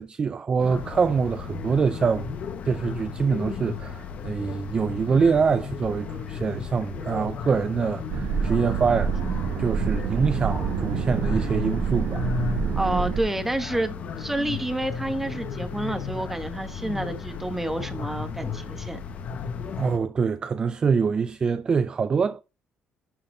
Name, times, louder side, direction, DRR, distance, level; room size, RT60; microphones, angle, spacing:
voice 1, 0.0-2.3 2.6-12.2 19.8-22.4, right 5 dB, 30° right, 0.4 m, -25 dB
sound 1, 0.6-20.0, left 6 dB, 50° left, 1.0 m, -34 dB
sound 2, 8.1-13.2, right 6 dB, 65° right, 1.0 m, -27 dB
voice 2, 12.7-19.0, right 1 dB, 10° right, 1.0 m, -29 dB
11.0 x 4.2 x 3.8 m
cardioid pair, 140°, 3 cm